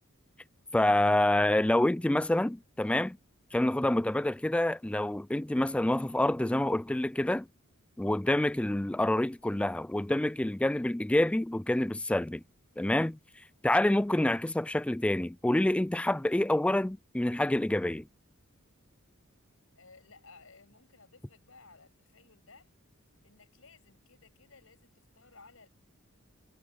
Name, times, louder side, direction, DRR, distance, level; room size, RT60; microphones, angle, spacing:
voice 1, 0.7-3.2 3.5-7.5 8.0-12.4 12.8-13.2 13.6-18.1, left 1 dB, 5° left, 0.3 m, -27 dB
voice 2, 19.7-22.7 23.2-25.7, left 4 dB, 75° left, 7.5 m, -57 dB
head